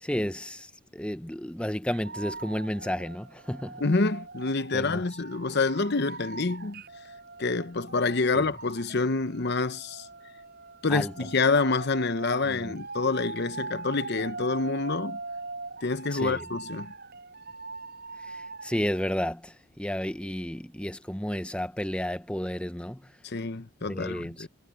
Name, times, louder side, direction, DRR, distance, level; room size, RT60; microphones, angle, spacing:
voice 1, 0.0-3.8 4.7-5.0 8.3-8.4 10.9-11.1 12.4-12.8 16.1-16.4 18.2-23.0 23.8-24.5, equal, 5° left, 0.7 m, -32 dB
sound 1, 1.9-19.2, right 3 dB, 50° right, 7.3 m, -42 dB
voice 2, 3.8-6.8 7.4-10.1 10.8-15.2 15.8-16.9 23.2-24.5, left 3 dB, 50° left, 0.8 m, -27 dB
head